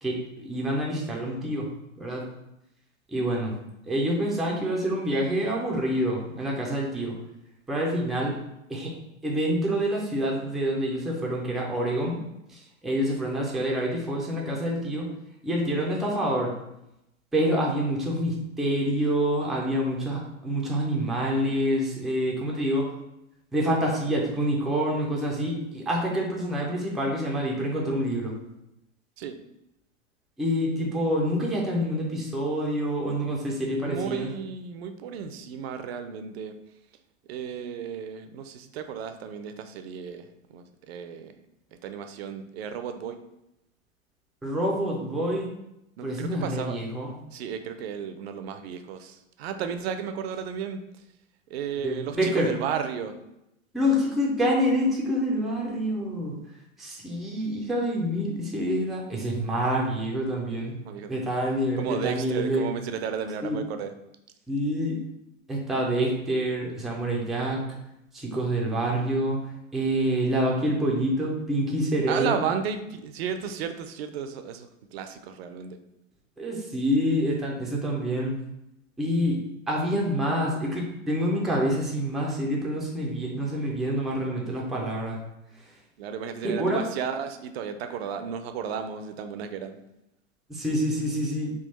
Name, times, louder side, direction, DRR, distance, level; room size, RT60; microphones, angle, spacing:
voice 1, 0.0-1.7 2.0-2.3 3.1-3.5 3.9-7.1 7.7-8.4 8.7-8.9 9.2-12.2 12.5-15.1 15.4-16.5 17.3-22.9 23.5-28.3 30.4-34.3 44.4-45.5 46.0-47.1 51.8-52.5 53.7-56.3 56.8-60.8 61.1-62.7 63.4-63.6 64.5-65.0 65.5-67.6 68.1-69.4 69.7-72.4 76.4-78.4 79.0-79.4 79.7-85.2 86.4-86.8 90.5-91.5, equal, ahead, -3 dB, 0.4 m, -27 dB
voice 2, 33.8-36.5 37.3-41.3 41.8-43.2 46.0-46.8 47.3-50.8 51.5-53.2 60.8-61.2 61.8-63.9 72.1-75.8 86.0-89.8, right 7 dB, 50° right, 8 dB, 0.5 m, -33 dB
3.6 x 2.4 x 4.0 m, 0.86 s
hypercardioid pair, 100°, 39 cm